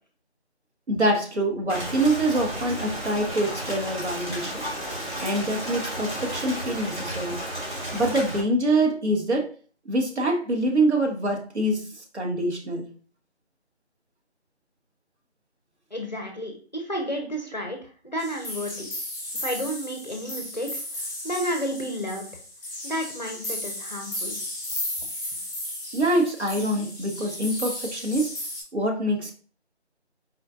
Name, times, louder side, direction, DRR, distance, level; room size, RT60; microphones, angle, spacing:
voice 1, 0.9-4.6 5.2-7.4 7.9-9.5 9.8-11.9 12.1-12.9 25.9-28.3 28.7-29.3, right 1 dB, 80° right, 2 dB, 1.3 m, -25 dB
Rain, 1.7-8.4, right 1 dB, 45° right, 2.0 m, -33 dB
voice 2, 15.9-17.8 18.0-18.9 19.4-20.8 21.2-22.3 22.8-24.4, equal, 40° left, 3 dB, 0.5 m, -31 dB
sound 1, 18.2-28.6, left 1 dB, 10° left, 1.3 m, -35 dB
4.4 x 3.6 x 2.5 m, 0.41 s
figure-of-eight pair, 175°, 33 cm